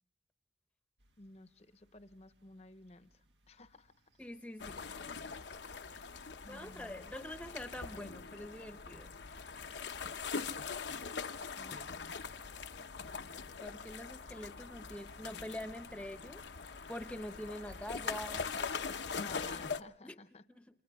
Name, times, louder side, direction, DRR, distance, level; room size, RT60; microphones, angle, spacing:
sound 1, 1.0-19.9, right 1 dB, 90° right, 1.7 m, -67 dB
voice 1, 1.2-3.9 6.4-7.1 11.6-12.0 19.1-20.4, left 2 dB, 35° left, 12 dB, 0.8 m, -54 dB
voice 2, 4.2-4.8 6.5-9.1 13.6-16.4 16.9-18.5 20.0-20.2 20.5-20.6, left 1 dB, 5° left, 7 dB, 0.8 m, -45 dB
sound 2, 4.6-19.8, left 5 dB, 85° left, 0.8 m, -42 dB
30.0 x 27.5 x 3.5 m, 0.64 s
head